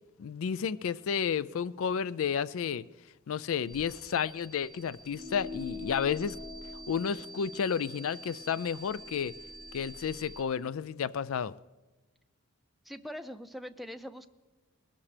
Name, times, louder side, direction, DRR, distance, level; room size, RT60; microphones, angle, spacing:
voice 1, 0.2-2.9 3.3-6.4 6.9-9.3 9.7-11.5, left 7 dB, 70° left, 18 dB, 0.4 m, -31 dB
sound 1, 3.7-10.4, right 2 dB, 20° left, 1.6 m, -48 dB
sound 2, 5.1-9.9, left 3 dB, 50° right, 1.5 m, -46 dB
voice 2, 12.8-14.3, equal, ahead, 7 dB, 0.4 m, -42 dB
20.5 x 13.0 x 3.3 m, 1.2 s
head